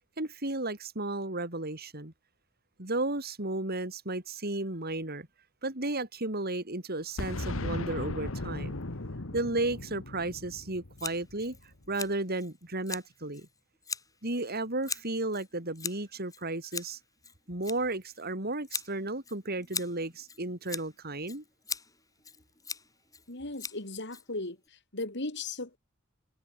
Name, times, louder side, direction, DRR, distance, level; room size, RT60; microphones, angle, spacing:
voice 1, 0.2-2.1 2.8-5.3 5.6-8.8 9.3-11.6 11.9-13.5 14.2-17.0 17.5-21.4, right 2 dB, 50° right, 4.9 m, -33 dB
Boom, 7.2-11.9, left 2 dB, 75° left, 1.7 m, -37 dB
Scissors, 11.0-24.7, left 5 dB, 15° left, 3.1 m, -42 dB
voice 2, 23.3-24.6 24.9-25.8, left 2 dB, 60° left, 4.3 m, -36 dB
head